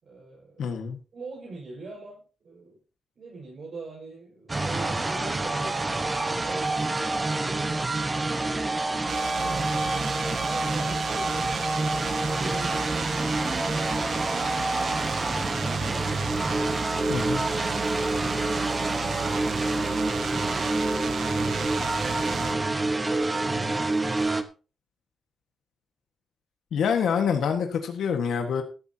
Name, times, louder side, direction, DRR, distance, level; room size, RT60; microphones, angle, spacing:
voice 1, 0.0-0.8 1.1-2.8 3.2-10.1 10.4-11.8 12.3-13.1 21.3-22.6 23.0-24.3, right 3 dB, 55° right, -3 dB, 5.9 m, -44 dB
voice 2, 0.6-1.0 17.1-17.4 26.7-28.6, left 7 dB, 85° left, 4 dB, 1.7 m, -26 dB
sound 1, 4.5-24.4, right 2 dB, 20° right, 1.3 m, -27 dB
sound 2, 9.1-22.5, right 9 dB, 80° right, 0.6 m, -35 dB
14.5 x 13.0 x 2.9 m, 0.33 s
cardioid pair, 115°, 0 cm